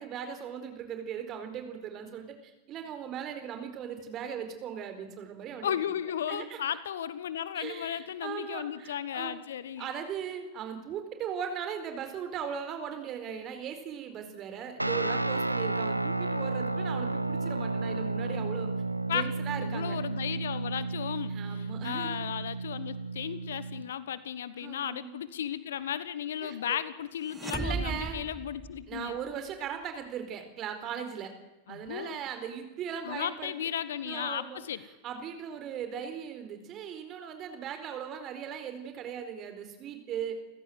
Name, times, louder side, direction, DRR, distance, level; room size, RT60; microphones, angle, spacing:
voice 1, 0.0-5.7 6.3-6.6 7.5-9.4 9.8-18.7 19.1-20.0 21.3-22.2 24.6-25.2 26.4-26.8 27.6-28.2 28.9-31.3 31.7-33.7 34.0-34.6 35.0-40.4, right 8 dB, 35° right, 7 dB, 4.3 m, -38 dB
voice 2, 5.6-9.9 19.1-19.3 19.6-29.2 31.7-32.2 33.0-34.8, left 9 dB, 60° left, 17 dB, 1.2 m, -35 dB
Guitar, 14.8-23.9, right 3 dB, 85° right, 1.0 m, -32 dB
sound 1, 27.3-29.3, right 4 dB, 10° right, 1.1 m, -36 dB
29.5 x 15.5 x 7.8 m, 1.0 s
figure-of-eight pair, 90°, 0 cm